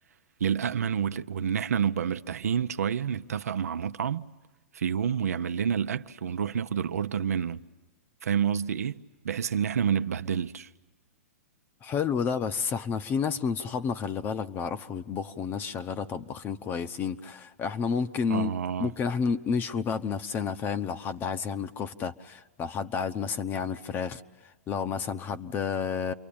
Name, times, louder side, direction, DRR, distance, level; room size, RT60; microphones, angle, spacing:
voice 1, 0.4-4.3 4.7-7.6 8.2-10.7 18.3-18.9, right 8 dB, 80° right, 0.8 m, -28 dB
voice 2, 11.8-18.5 18.8-24.2 24.7-26.1, left 6 dB, 25° left, 0.8 m, -30 dB
29.0 x 23.5 x 8.6 m
hypercardioid pair, 130°, 8 cm